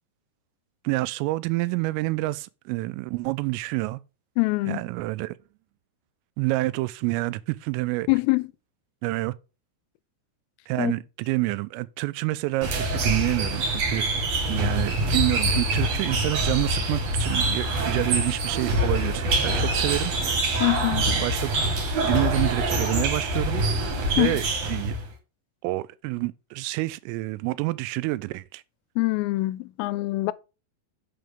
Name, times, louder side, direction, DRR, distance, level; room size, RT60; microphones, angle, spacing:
voice 1, 0.8-4.0 4.7-5.4 6.4-8.1 9.0-9.3 10.7-14.1 14.5-20.1 21.1-21.5 22.0-23.6 24.2-25.0 25.6-28.6, right 20 dB, 85° right, 3.2 m, -28 dB
voice 2, 4.4-4.8 8.1-8.5 10.8-10.9 20.6-21.1 24.2-24.4 29.0-30.3, left 23 dB, 90° left, 3.2 m, -24 dB
sound 1, 12.6-25.1, right 2 dB, 55° right, 1.9 m, -25 dB
7.7 x 6.8 x 5.2 m
omnidirectional pair, 5.8 m